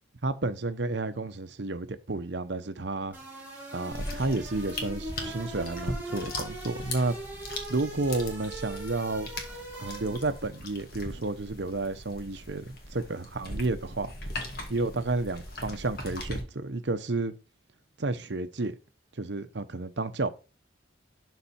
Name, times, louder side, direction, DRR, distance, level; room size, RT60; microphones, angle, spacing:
voice 1, 0.2-3.2 3.7-7.2 7.7-9.3 9.8-14.1 14.7-17.3 18.0-18.7 19.2-20.3, right 2 dB, 60° right, 0.8 m, -31 dB
sound 1, 3.1-10.5, right 1 dB, 10° right, 3.1 m, -41 dB
sound 2, 3.9-16.4, left 1 dB, 50° left, 1.8 m, -39 dB
11.5 x 4.1 x 4.3 m
head